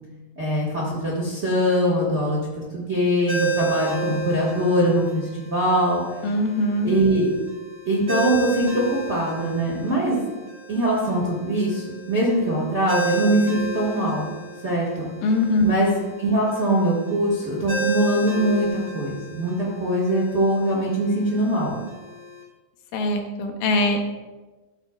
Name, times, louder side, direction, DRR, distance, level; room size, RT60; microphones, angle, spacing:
voice 1, 0.4-2.4 2.7-6.0 6.8-7.3 7.8-10.2 10.7-14.3 14.6-15.1 15.6-15.9 16.2-21.7, right 1 dB, 65° right, -5 dB, 0.6 m, -22 dB
Ringtone, 3.3-22.4, right 3 dB, 35° right, 1.0 m, -33 dB
voice 2, 6.2-6.9 15.2-15.7 22.9-24.0, left 1 dB, 85° left, 4 dB, 2.7 m, -22 dB
12.5 x 8.0 x 2.4 m, 1.2 s
omnidirectional pair, 4.1 m